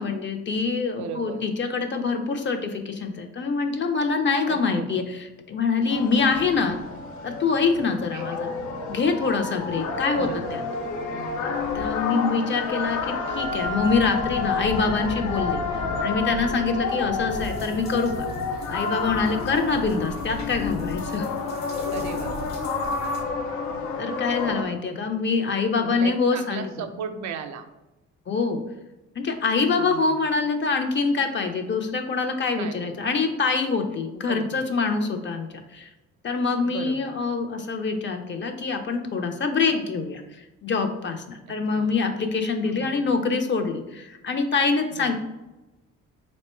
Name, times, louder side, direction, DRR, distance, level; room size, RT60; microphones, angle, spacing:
voice 1, 0.0-5.0 5.5-6.8 7.2-8.5 8.9-10.6 11.4-15.6 16.0-18.1 18.7-21.3 24.0-26.7 28.3-28.6 29.2-35.9 36.2-40.2 40.6-45.1, left 4 dB, 40° left, 5 dB, 0.5 m, -25 dB
voice 2, 0.9-1.5 4.5-5.0 8.1-8.4 10.2-10.6 11.1-11.5 19.7-20.0 21.9-22.4 24.9-25.0 25.8-27.7 29.8-30.2 32.6-33.0 34.3-34.7 36.6-37.1 41.7-42.0 42.6-43.1 44.9-45.1, right 7 dB, 70° right, 8 dB, 0.5 m, -37 dB
sound 1, 5.9-24.6, left 4 dB, 85° left, 0.6 m, -29 dB
sound 2, 17.3-23.2, left 3 dB, 60° left, 1.0 m, -46 dB
3.6 x 2.1 x 4.3 m, 1.0 s
cardioid pair, 90°, 30 cm